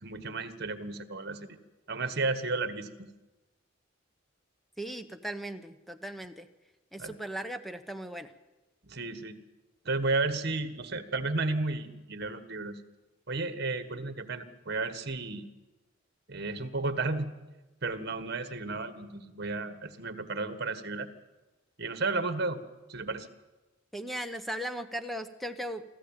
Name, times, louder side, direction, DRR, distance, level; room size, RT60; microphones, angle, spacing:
voice 1, 0.0-1.5 1.9-3.1 7.0-7.2 8.8-9.4 9.9-12.8 13.3-15.5 16.3-17.3 17.8-21.1 21.8-22.6 22.9-23.3, right 3 dB, 55° right, 10 dB, 1.6 m, -33 dB
voice 2, 4.8-6.5 6.9-8.3 23.9-25.8, right 1 dB, ahead, 9 dB, 1.0 m, -37 dB
25.5 x 14.5 x 9.0 m, 1.1 s
head